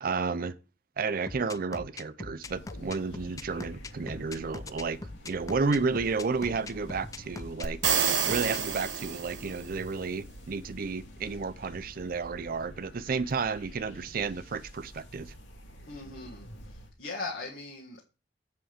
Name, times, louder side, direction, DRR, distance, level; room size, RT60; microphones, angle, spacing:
voice 1, 0.0-0.6 1.0-7.9 8.2-15.3, right 4 dB, 50° right, 0.5 m, -32 dB
sound 1, 1.3-8.6, left 3 dB, 20° left, 0.4 m, -41 dB
sound 2, 2.4-16.9, equal, 90° left, 2.1 m, -48 dB
sound 3, 7.6-9.7, right 7 dB, 85° right, 1.2 m, -28 dB
voice 2, 15.9-18.0, left 3 dB, 65° left, 1.8 m, -40 dB
7.8 x 6.1 x 5.0 m
head